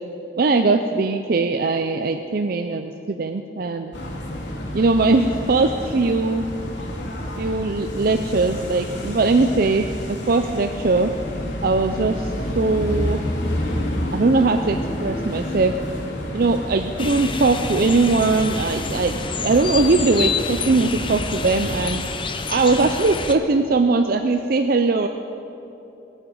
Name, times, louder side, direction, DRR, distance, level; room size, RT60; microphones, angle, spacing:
voice 1, 0.4-3.9 4.7-6.4 7.4-11.1 11.6-13.2 14.1-15.8 16.3-22.0 22.5-25.1, right 3 dB, 50° right, 7 dB, 0.5 m, -20 dB
sound 1, 3.9-21.9, equal, 80° left, 2.3 m, -30 dB
sound 2, 17.0-23.3, left 4 dB, 25° left, 0.7 m, -28 dB
21.0 x 9.5 x 5.4 m, 2.9 s
head